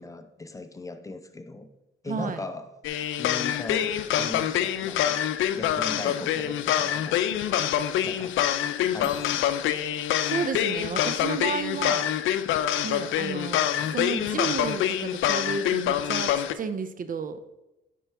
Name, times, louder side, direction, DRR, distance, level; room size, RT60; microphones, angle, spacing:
voice 1, 0.0-1.7 2.0-2.7 3.2-5.3 5.5-7.2 8.0-8.3 8.6-9.4 13.8-13.9, left 2 dB, 15° left, 8 dB, 0.7 m, -39 dB
voice 2, 2.1-2.4 10.2-12.1 12.8-17.4, right 5 dB, 45° right, 11 dB, 0.5 m, -32 dB
sound 1, 2.8-16.5, left 10 dB, 80° left, 0.5 m, -26 dB
sound 2, 9.0-11.7, left 7 dB, 45° left, 1.3 m, -52 dB
10.0 x 4.5 x 3.4 m, 0.99 s
cardioid pair, 90°, 20 cm